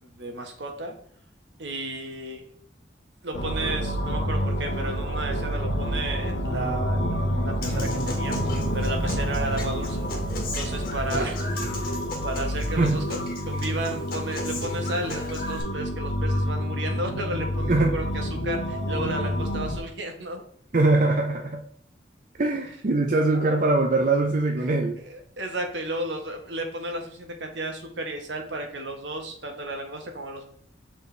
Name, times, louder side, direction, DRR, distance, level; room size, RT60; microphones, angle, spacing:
voice 1, 0.0-0.9 1.6-2.4 3.2-20.4 24.6-30.5, right 2 dB, 75° right, 4 dB, 1.2 m, -33 dB
sound 1, 3.3-19.8, equal, 70° left, 1.0 m, -28 dB
Human voice / Acoustic guitar, 7.6-15.6, left 2 dB, 50° left, 1.4 m, -35 dB
voice 2, 20.7-21.6 22.4-25.0, right 2 dB, 45° right, 2 dB, 0.6 m, -22 dB
6.9 x 4.3 x 3.3 m, 0.63 s
head